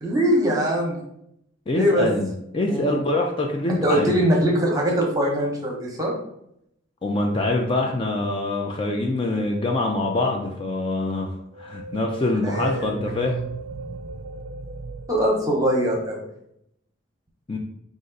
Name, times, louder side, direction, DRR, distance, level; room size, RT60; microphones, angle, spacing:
voice 1, 0.0-1.0 1.7-2.1 2.7-3.0 3.8-6.1 12.4-13.0 15.1-16.2, equal, 20° right, -1 dB, 0.9 m, -22 dB
voice 2, 1.7-4.2 7.0-11.3 11.6-13.4 17.5-17.6, left 2 dB, 25° left, 1 dB, 0.4 m, -24 dB
sound 1, 11.5-16.2, right 4 dB, 80° right, 0.4 m, -36 dB
5.1 x 2.5 x 3.9 m, 0.76 s
head